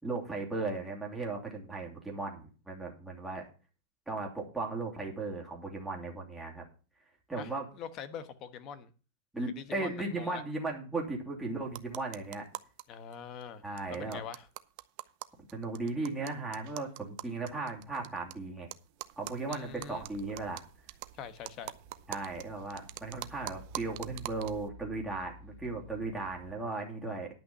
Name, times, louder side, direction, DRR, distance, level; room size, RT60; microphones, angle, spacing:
voice 1, 0.0-3.4 4.1-6.6 7.3-7.7 9.3-12.4 13.6-14.2 15.5-18.7 19.2-20.6 22.1-27.3, right 3 dB, 5° right, 2.8 m, -36 dB
voice 2, 7.3-8.9 9.4-10.4 12.9-13.6 13.9-14.4 19.5-20.1 21.2-21.7, left 7 dB, 35° left, 1.2 m, -44 dB
sound 1, 11.7-12.8 13.1-13.2 13.4-13.5 13.8-18.3 18.7-24.7, right 19 dB, 50° right, 0.7 m, -45 dB
sound 2, 20.1-26.5, left 1 dB, 85° left, 2.6 m, -54 dB
10.5 x 5.9 x 7.0 m
supercardioid pair, 155°, 0 cm